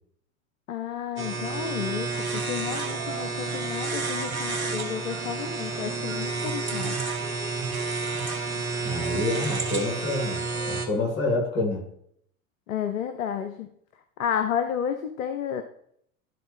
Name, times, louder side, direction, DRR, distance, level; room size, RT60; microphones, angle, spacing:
voice 1, 0.7-6.9 12.7-13.7 14.2-15.6, left 8 dB, 70° left, 8 dB, 0.7 m, -31 dB
sound 1, 1.2-10.9, right 3 dB, 80° right, 1.4 m, -30 dB
voice 2, 8.8-11.9, left 2 dB, 50° left, 0 dB, 2.8 m, -28 dB
12.0 x 4.0 x 3.6 m, 0.69 s
figure-of-eight pair, 75°, 42 cm